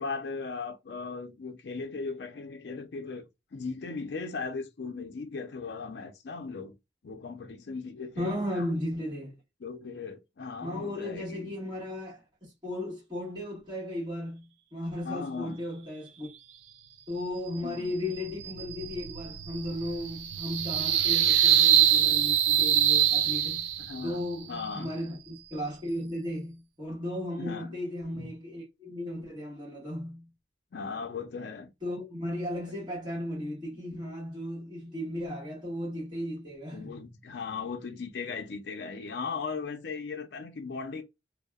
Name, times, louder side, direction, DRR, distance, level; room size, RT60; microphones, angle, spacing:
voice 1, 0.0-6.7 7.0-8.7 9.6-11.5 15.0-15.6 17.6-17.9 23.8-24.9 27.4-27.7 28.1-28.3 29.2-29.3 30.7-31.7 33.9-34.0 36.7-41.0, left 4 dB, 65° left, 0.4 m, -38 dB
voice 2, 8.2-9.4 10.6-16.3 17.1-23.7 24.0-30.3 31.8-37.0, left 1 dB, 25° right, 1.3 m, -35 dB
sound 1, 18.1-24.1, right 10 dB, 85° right, 0.3 m, -24 dB
2.7 x 2.0 x 2.2 m
head